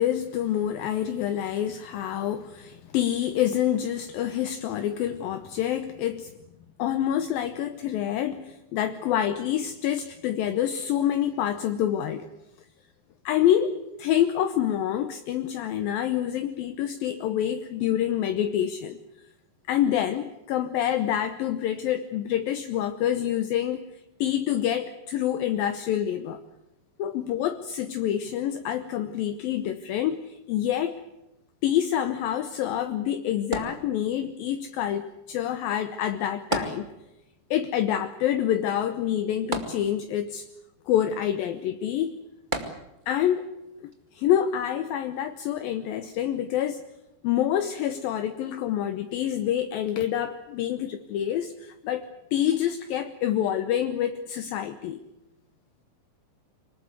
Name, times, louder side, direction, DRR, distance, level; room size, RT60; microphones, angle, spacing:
voice 1, 0.0-6.3 6.8-12.3 13.2-19.0 19.7-23.8 24.2-26.4 27.0-31.0 31.6-36.9 37.5-40.5 40.9-42.1 43.1-43.5 43.8-46.8 47.2-52.0 52.3-55.0, left 10 dB, 70° left, 9 dB, 2.3 m, -27 dB
sound 1, 33.5-34.4 36.5-37.4 37.7-37.8 39.5-40.3 42.5-43.2 43.9-44.0, right 1 dB, 50° right, 0.5 m, -32 dB
25.0 x 20.0 x 8.1 m, 0.96 s
omnidirectional pair, 5.2 m